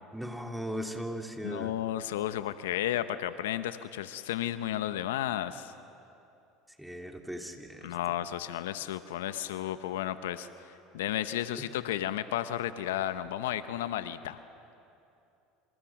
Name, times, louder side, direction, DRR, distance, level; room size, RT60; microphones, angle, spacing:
voice 1, 0.1-1.7 6.8-7.9 11.6-11.7, equal, 5° right, 3 dB, 3.0 m, -38 dB
voice 2, 1.4-5.7 7.8-10.5 10.9-14.4, left 12 dB, 85° left, 12 dB, 0.8 m, -33 dB
28.5 x 27.5 x 6.0 m, 2.7 s
hypercardioid pair, 85°, 0 cm